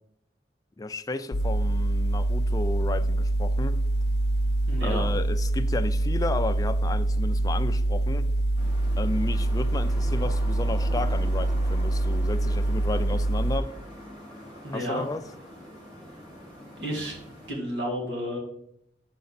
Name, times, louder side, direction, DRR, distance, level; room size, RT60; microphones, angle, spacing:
voice 1, 0.8-3.8 4.8-8.3 9.0-13.7 14.7-15.2, left 2 dB, 20° left, 0.3 m, -33 dB
sound 1, 1.3-13.6, right 1 dB, 70° left, 0.7 m, -25 dB
voice 2, 4.7-5.0 14.6-15.0 16.8-17.2 17.5-18.4, equal, 90° right, 1.9 m, -31 dB
sound 2, 8.6-17.5, equal, 25° right, 2.0 m, -43 dB
6.7 x 5.1 x 4.1 m
head